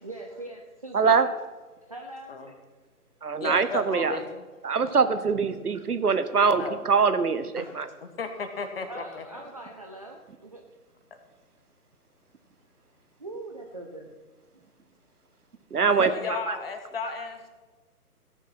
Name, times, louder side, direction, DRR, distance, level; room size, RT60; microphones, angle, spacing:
voice 1, 0.0-1.2 1.8-2.6 7.6-7.8 8.9-10.6 13.2-14.1 14.5-14.6, right 2 dB, 25° right, 1 dB, 0.6 m, -41 dB
voice 2, 0.9-1.3 3.2-4.2 4.6-7.8 15.7-16.1 16.5-16.6, right 5 dB, 70° right, 11 dB, 1.1 m, -23 dB
voice 3, 3.4-4.4 6.6-6.8 8.2-9.2 16.0-17.5, left 4 dB, 40° left, 7 dB, 1.4 m, -34 dB
16.0 x 7.1 x 5.8 m, 1.3 s
figure-of-eight pair, 145°, 47 cm